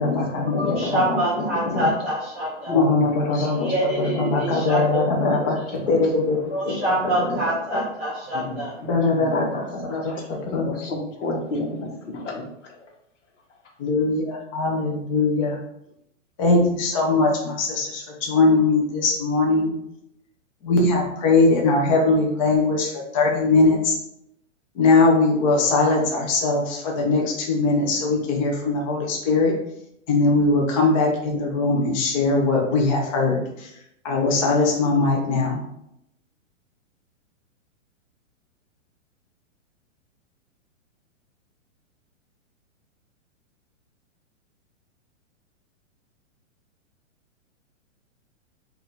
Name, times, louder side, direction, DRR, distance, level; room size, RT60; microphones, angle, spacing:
voice 1, 0.0-1.2 1.7-1.9 2.7-3.7 4.0-6.4 6.7-6.8 7.3-7.4 7.7-7.8 8.9-10.7 13.8-15.6 16.4-19.7 20.6-24.0 24.7-29.5 30.1-33.7 34.0-35.6, left 3 dB, 25° left, -1 dB, 0.7 m, -21 dB
voice 2, 0.6-2.7 3.5-4.9 6.5-8.8, right 1 dB, 10° right, -9 dB, 0.4 m, -26 dB
voice 3, 10.6-11.7 12.1-12.4, left 2 dB, 65° left, 1 dB, 1.3 m, -29 dB
4.9 x 2.7 x 3.2 m, 0.79 s
hypercardioid pair, 165°, 39 cm